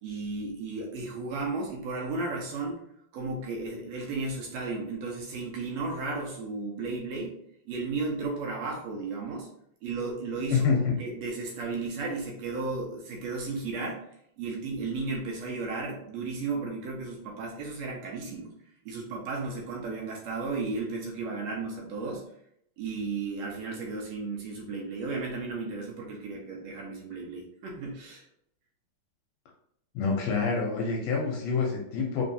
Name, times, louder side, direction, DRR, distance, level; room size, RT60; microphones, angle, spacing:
voice 1, 0.0-2.8 3.1-7.4 7.6-9.5 9.8-14.1 14.4-18.5 18.8-22.2 22.8-28.2, right 3 dB, 75° right, -1 dB, 1.8 m, -34 dB
voice 2, 10.5-11.0 29.9-32.2, left 5 dB, 75° left, -1 dB, 1.7 m, -27 dB
4.1 x 3.6 x 2.6 m, 0.71 s
omnidirectional pair, 3.4 m